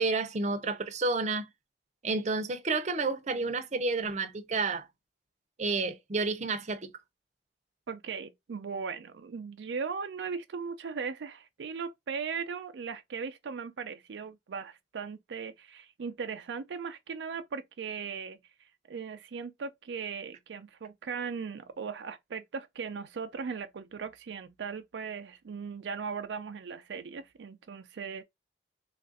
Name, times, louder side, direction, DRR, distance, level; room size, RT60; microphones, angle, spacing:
voice 1, 0.0-1.5 2.0-4.9 5.6-6.9, right 3 dB, 40° right, 0.6 m, -30 dB
voice 2, 7.9-18.4 18.9-28.2, right 5 dB, 85° right, 0.4 m, -38 dB
3.2 x 2.5 x 3.8 m
head